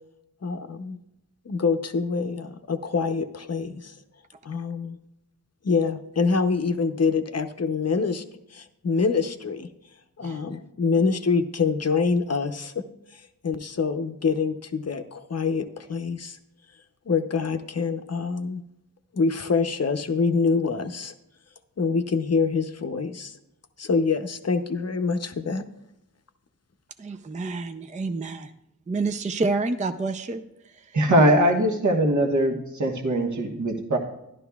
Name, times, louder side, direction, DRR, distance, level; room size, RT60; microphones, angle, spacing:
voice 1, 0.4-1.0 1.5-3.9 4.4-5.0 5.6-8.2 8.5-9.7 10.2-12.8 13.1-16.4 17.1-18.6 19.1-21.1 21.8-23.4 23.8-25.6, left 4 dB, 45° left, 8 dB, 0.7 m, -25 dB
voice 2, 27.0-28.5 28.9-30.4, right 3 dB, 20° right, 9 dB, 0.4 m, -28 dB
voice 3, 30.9-34.0, right 1 dB, 50° right, 1 dB, 1.3 m, -21 dB
12.0 x 11.0 x 2.3 m, 0.85 s
wide cardioid pair, 65°, 36 cm